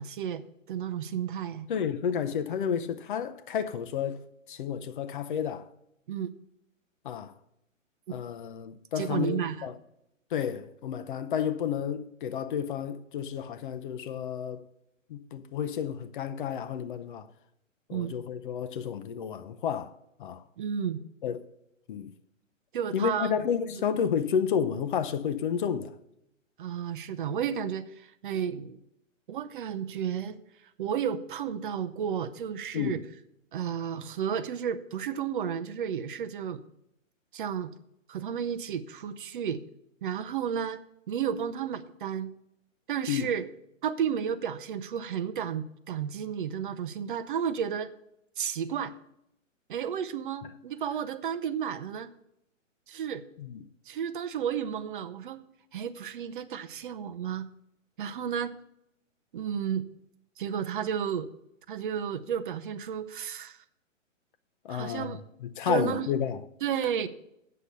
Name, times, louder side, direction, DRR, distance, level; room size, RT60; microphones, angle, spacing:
voice 1, 0.0-1.7 6.1-6.3 9.0-9.7 17.9-18.1 20.6-21.0 22.7-23.3 23.7-23.8 26.6-28.8 29.3-30.4 30.8-33.0 33.5-36.6 37.3-37.7 38.1-39.6 40.0-42.3 42.9-43.5 43.8-47.9 48.4-48.9 49.7-52.1 52.9-53.2 53.9-55.5 55.7-57.5 58.0-58.6 59.3-59.9 60.4-61.3 61.7-63.6 64.7-65.2 65.6-66.1 66.6-67.1, right 8 dB, 40° right, 0.6 m, -32 dB
voice 2, 1.7-4.2 4.5-5.7 7.0-7.3 8.1-9.7 10.3-14.6 15.1-17.3 17.9-19.9 20.2-20.4 21.2-21.5 21.9-22.1 22.9-25.9 32.7-33.0 43.1-43.3 53.4-53.6 64.6-66.4, left 8 dB, 40° left, 0.7 m, -31 dB
8.6 x 6.7 x 6.7 m
figure-of-eight pair, 130°, 39 cm